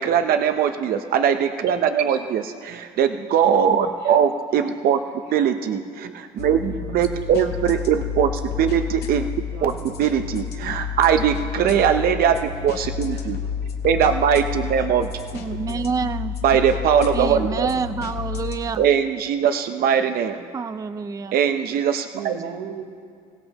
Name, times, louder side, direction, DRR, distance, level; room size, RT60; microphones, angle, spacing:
voice 1, 0.0-5.0 5.3-9.3 9.6-13.4 13.8-15.1 16.4-17.7 18.8-20.4 21.3-22.3, right 8 dB, 65° right, 7 dB, 0.7 m, -21 dB
sound 1, 6.4-18.6, left 7 dB, 75° left, 1.6 m, -30 dB
voice 2, 6.6-7.1 9.5-9.9 12.4-12.6 13.1-14.0 15.7-15.9 17.3-17.8 22.1-22.8, right 7 dB, 85° right, 5 dB, 1.3 m, -38 dB
voice 3, 15.3-16.4 17.1-18.8 20.5-21.3, right 5 dB, 20° right, 12 dB, 0.4 m, -27 dB
26.0 x 16.5 x 2.9 m, 2.2 s
cardioid pair, 110°, 17 cm